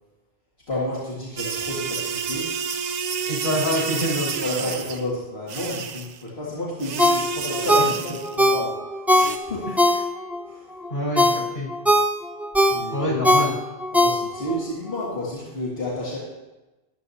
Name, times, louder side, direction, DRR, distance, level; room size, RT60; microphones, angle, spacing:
voice 1, 0.7-2.5 4.3-9.9 10.4-10.8 12.7-13.2 13.9-16.2, left 1 dB, 90° left, -8 dB, 2.5 m, -31 dB
sound 1, 1.4-5.0 5.5-6.2 6.8-8.4 9.1-9.4, right 7 dB, 50° right, 0.6 m, -30 dB
voice 2, 3.3-4.3 7.7-7.8 9.7-9.8 10.9-11.7 12.9-13.6, left 1 dB, 70° left, -5 dB, 4.5 m, -26 dB
Ringtone, 7.0-10.4 10.8-14.6 15.0-15.1, left 1 dB, ahead, 0.4 m, -20 dB
13.5 x 11.0 x 2.8 m, 1.1 s
omnidirectional pair, 1.0 m